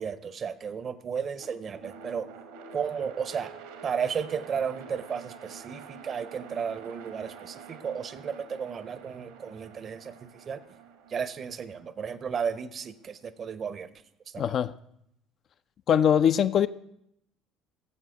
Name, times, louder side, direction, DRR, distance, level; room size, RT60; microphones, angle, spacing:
voice 1, 0.0-2.3 2.7-3.5 3.8-10.6 11.1-13.9 14.3-14.4, right 6 dB, 40° right, 15 dB, 0.6 m, -33 dB
sound 1, 1.3-13.5, right 6 dB, 70° right, 1.0 m, -48 dB
voice 2, 14.4-14.7 15.9-16.7, left 9 dB, 45° left, 13 dB, 0.3 m, -22 dB
16.0 x 7.4 x 3.8 m, 0.76 s
figure-of-eight pair, 60°, 0 cm